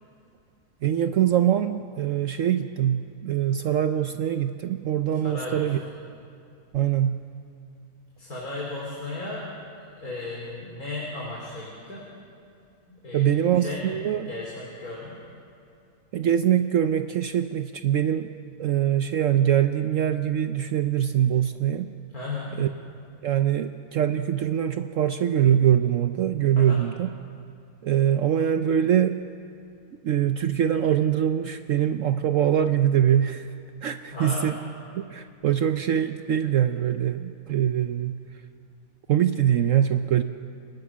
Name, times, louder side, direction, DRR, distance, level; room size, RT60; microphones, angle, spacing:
voice 1, 0.8-5.8 6.7-7.2 13.1-14.3 16.1-18.3 18.6-21.9 22.6-22.7 23.2-27.1 27.8-29.2 30.0-33.5 33.8-34.6 34.9-38.2 39.1-40.2, right 10 dB, 65° right, 9 dB, 1.0 m, -23 dB
voice 2, 5.2-5.9 8.2-9.4 10.0-12.1 12.9-14.0 14.2-15.1 22.1-22.6 26.6-26.8 34.1-34.5, left 2 dB, 75° left, -4 dB, 4.4 m, -35 dB
30.0 x 19.0 x 6.3 m, 2.5 s
omnidirectional pair, 1.6 m